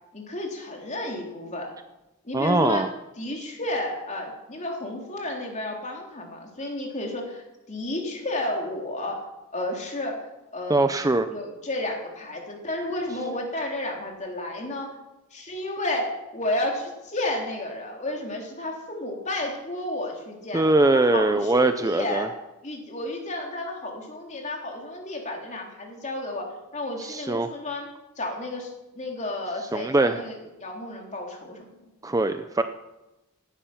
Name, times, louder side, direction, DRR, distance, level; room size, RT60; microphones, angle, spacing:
voice 1, 0.1-1.7 2.2-2.8 3.2-9.3 9.5-10.3 10.5-10.9 11.3-14.9 15.3-22.4 22.6-27.9 28.2-31.6, left 1 dB, 35° left, 1 dB, 3.3 m, -32 dB
voice 2, 2.3-2.9 10.7-11.3 20.5-22.3 27.0-27.5 29.7-30.2 32.0-32.6, right 2 dB, 15° right, 9 dB, 0.5 m, -22 dB
17.0 x 11.5 x 5.8 m, 1.0 s
head